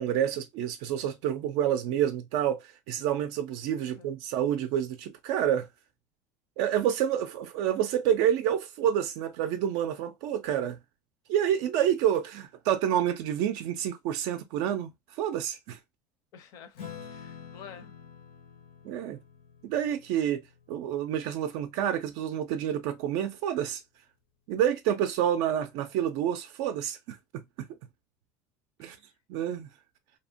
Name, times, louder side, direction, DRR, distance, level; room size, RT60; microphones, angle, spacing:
voice 1, 0.0-5.7 6.6-10.8 11.3-15.8 18.8-19.2 19.6-20.4 20.7-23.8 24.5-27.7 28.8-29.0 29.3-29.7, right 10 dB, 60° right, 0.4 m, -28 dB
voice 2, 16.3-18.0 28.8-29.0, left 7 dB, 50° left, 0.6 m, -50 dB
Acoustic guitar / Strum, 16.7-21.6, left 7 dB, 90° left, 1.1 m, -48 dB
2.7 x 2.1 x 2.5 m
cardioid pair, 150°, 8 cm